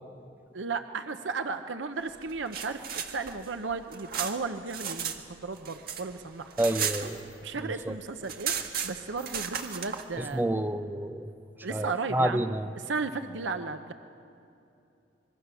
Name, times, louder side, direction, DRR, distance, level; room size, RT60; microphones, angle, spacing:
voice 1, 0.5-6.5 7.4-8.5 8.8-10.4 11.6-12.5 12.8-13.9, right 4 dB, 80° right, 8 dB, 0.8 m, -34 dB
sound 1, 2.3-5.2 5.5-7.6 7.9-8.0 8.2-10.0, right 7 dB, 55° right, 1.6 m, -34 dB
voice 2, 6.6-7.2 7.6-8.0 10.2-11.3 11.7-12.7, right 1 dB, 10° right, 9 dB, 0.7 m, -29 dB
25.5 x 22.0 x 7.0 m, 2.7 s
head